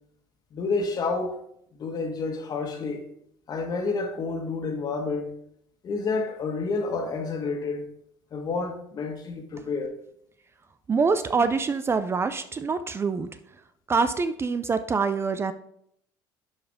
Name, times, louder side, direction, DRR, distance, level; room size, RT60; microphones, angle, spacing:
voice 1, 0.5-1.4 1.7-3.1 3.5-5.3 5.8-7.9 8.3-9.9, left 4 dB, 45° left, 1.6 m, -29 dB
voice 2, 10.9-13.3 13.9-15.5, right 4 dB, 25° right, 0.5 m, -25 dB
11.0 x 4.9 x 3.6 m
supercardioid pair, 85°, 9 cm